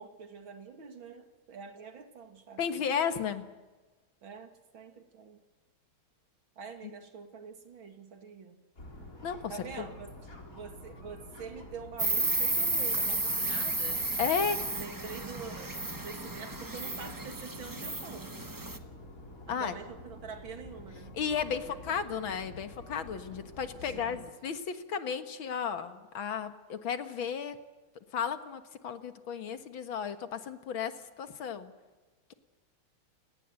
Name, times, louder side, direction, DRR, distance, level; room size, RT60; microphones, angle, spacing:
voice 1, 0.0-2.6 4.2-5.4 6.6-8.6 9.5-10.2 10.5-14.0 14.8-18.4 19.5-21.2 21.5-22.0 23.7-24.3, right 5 dB, 70° right, 6 dB, 3.1 m, -46 dB
voice 2, 2.6-3.5 9.2-9.5 14.2-14.6 19.5-19.7 21.1-27.6 28.1-31.7, left 7 dB, 70° left, 9 dB, 2.3 m, -34 dB
sound 1, 8.7-24.2, left 1 dB, 40° left, 4.8 m, -49 dB
Insect, 12.0-18.8, right 2 dB, 15° right, 0.9 m, -32 dB
29.0 x 19.0 x 7.8 m, 1.2 s
omnidirectional pair, 2.2 m